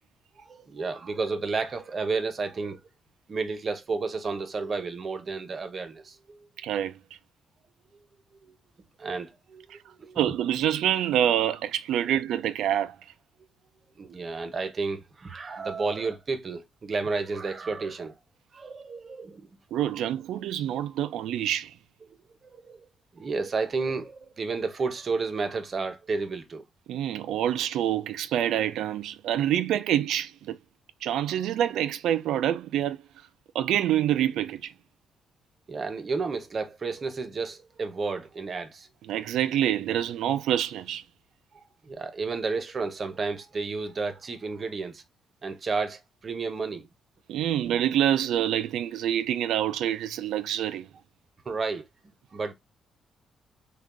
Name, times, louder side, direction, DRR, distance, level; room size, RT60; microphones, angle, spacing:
voice 1, 0.4-2.8 3.3-6.5 8.4-8.6 9.0-10.2 12.1-12.2 14.0-18.2 18.5-19.5 22.1-22.2 22.4-22.9 23.1-26.6 35.7-38.9 41.8-45.0 45.4-46.9 51.5-51.8 52.3-52.5, right 4 dB, 40° right, 0.7 m, -32 dB
voice 2, 6.6-7.0 10.2-13.0 19.7-21.7 26.9-30.6 31.0-33.0 33.5-34.7 39.1-41.0 47.3-50.9, right 11 dB, 80° right, 0.3 m, -26 dB
3.5 x 2.2 x 3.7 m
cardioid pair, 90°, 0 cm